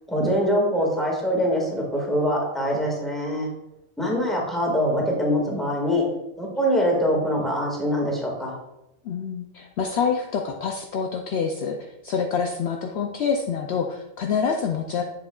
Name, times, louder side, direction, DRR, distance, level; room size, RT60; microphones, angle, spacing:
voice 1, 0.1-3.5 4.0-6.0 6.4-8.5, equal, ahead, -3 dB, 1.8 m, -23 dB
voice 2, 9.0-11.8 12.0-15.0, left 6 dB, 65° left, 3 dB, 0.8 m, -26 dB
7.8 x 7.3 x 2.4 m, 0.92 s
omnidirectional pair, 1.3 m